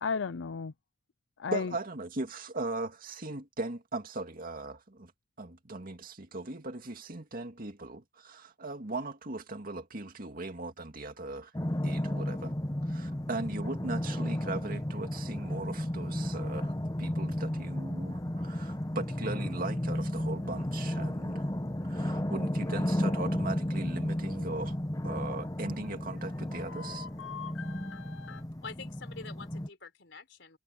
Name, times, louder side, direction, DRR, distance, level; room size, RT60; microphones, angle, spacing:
voice 1, 0.0-0.7 1.4-1.7 26.5-28.4, left 5 dB, 85° left, 0.5 m, -36 dB
voice 2, 1.5-5.1 5.4-11.5 11.8-12.5 12.8-16.7 17.0-21.5 21.8-24.8 25.0-27.1, right 2 dB, 50° right, 2.2 m, -38 dB
sound 1, 11.5-29.7, left 1 dB, 20° left, 1.0 m, -33 dB
voice 3, 28.6-30.6, left 4 dB, 70° left, 4.5 m, -46 dB
head